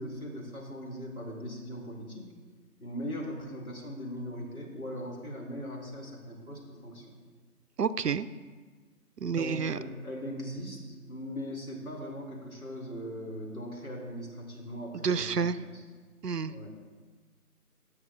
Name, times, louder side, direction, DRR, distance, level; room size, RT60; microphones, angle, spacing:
voice 1, 0.0-2.3 2.8-7.1 9.2-10.8 11.1-15.8 16.5-16.7, equal, 65° left, -1 dB, 2.6 m, -39 dB
voice 2, 7.8-8.3 9.2-9.8 15.0-15.6 16.2-16.7, right 6 dB, 85° right, 14 dB, 0.6 m, -29 dB
17.5 x 6.9 x 2.4 m, 1.4 s
figure-of-eight pair, 170°, 46 cm